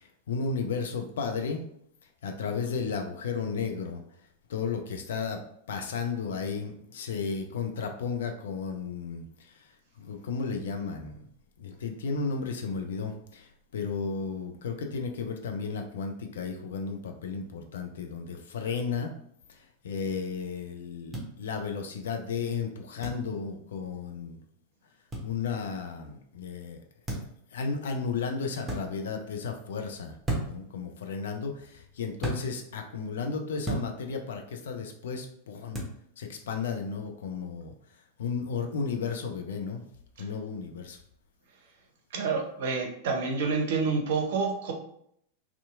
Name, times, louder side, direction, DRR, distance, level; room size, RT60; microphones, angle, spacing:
voice 1, 0.0-1.7 2.2-4.0 4.5-5.4 5.7-9.7 10.0-11.2 11.6-19.1 19.5-24.4 25.2-26.8 27.5-30.2 30.4-35.8 36.2-37.7 38.2-39.8 40.2-41.0, left 5 dB, 60° left, 4 dB, 0.4 m, -34 dB
sound 1, 21.1-21.3 23.0-23.2 25.1-25.3 27.0-27.4 28.6-28.8 30.2-30.7 32.2-32.4 33.6-33.9 35.7-35.9, right 1 dB, 10° right, 0.8 m, -32 dB
voice 2, 42.1-44.7, right 4 dB, 55° right, 3 dB, 0.5 m, -28 dB
2.7 x 2.3 x 2.3 m, 0.69 s
figure-of-eight pair, 90°, 0 cm